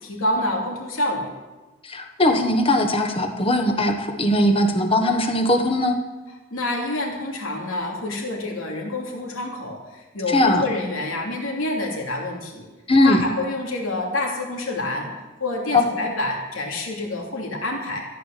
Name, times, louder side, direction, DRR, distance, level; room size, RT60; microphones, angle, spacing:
voice 1, 0.0-1.3 6.5-12.7 13.0-15.1 15.4-18.0, left 2 dB, 75° left, 0 dB, 2.8 m, -27 dB
voice 2, 1.8-6.0 10.3-10.6 12.9-13.2, left 1 dB, 25° left, 5 dB, 1.3 m, -20 dB
14.5 x 9.2 x 6.7 m, 1.2 s
head